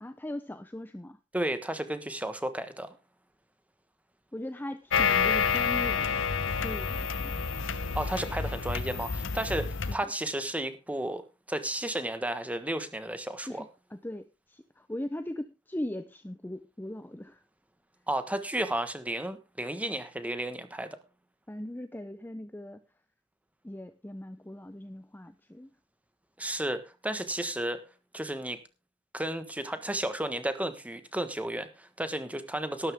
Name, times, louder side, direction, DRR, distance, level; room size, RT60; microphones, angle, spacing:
voice 1, 0.0-1.2 4.3-6.3 6.6-7.4 9.9-10.1 13.4-17.4 21.5-22.8 23.6-25.7, left 1 dB, 10° left, 9 dB, 0.6 m, -39 dB
voice 2, 1.3-3.0 7.9-11.2 11.5-13.6 18.1-21.0 26.4-27.8 28.1-28.6 29.1-32.9, right 1 dB, 10° right, 9 dB, 1.4 m, -33 dB
sound 1, 4.9-10.0, left 6 dB, 75° left, 0.9 m, -29 dB
13.0 x 12.5 x 3.6 m, 0.29 s
head